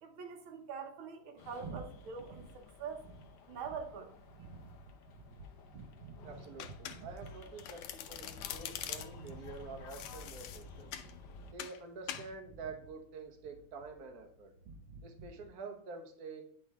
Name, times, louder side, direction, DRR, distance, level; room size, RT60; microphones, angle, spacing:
voice 1, 0.0-3.0 3.5-4.1, right 6 dB, 75° right, 5 dB, 1.8 m, -44 dB
sound 1, 1.4-11.5, left 5 dB, 60° left, 1.3 m, -54 dB
sound 2, 1.6-15.5, right 3 dB, 90° right, 2.2 m, -53 dB
voice 2, 6.2-10.9 11.5-14.5 15.0-16.4, right 4 dB, 50° right, 3 dB, 1.4 m, -48 dB
Domestic sounds home sounds, 6.6-7.3 7.6-9.3 9.9-11.1 11.6-11.8 12.1-12.3, left 10 dB, 90° left, 1.5 m, -43 dB
9.5 x 3.9 x 3.6 m, 0.66 s
omnidirectional pair, 2.3 m